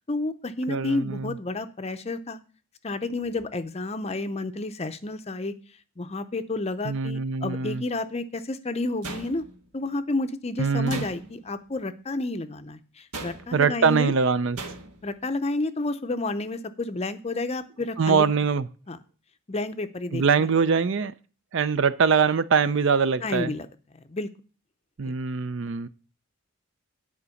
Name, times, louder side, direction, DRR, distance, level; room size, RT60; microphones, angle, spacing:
voice 1, 0.0-2.4 2.8-5.5 6.0-9.4 9.7-14.1 15.0-18.3 18.9-19.0 19.5-20.5 23.2-23.7 23.9-24.3, left 2 dB, 30° left, 0.5 m, -30 dB
voice 2, 0.7-1.4 6.8-7.8 10.6-11.1 13.5-14.6 18.0-18.7 20.1-21.1 21.5-23.5 25.0-25.9, right 5 dB, 55° right, 0.5 m, -23 dB
sound 1, 9.0-9.8 10.9-11.5 13.1-13.7 14.6-15.1, right 3 dB, 85° right, 1.5 m, -38 dB
9.7 x 5.1 x 7.0 m
head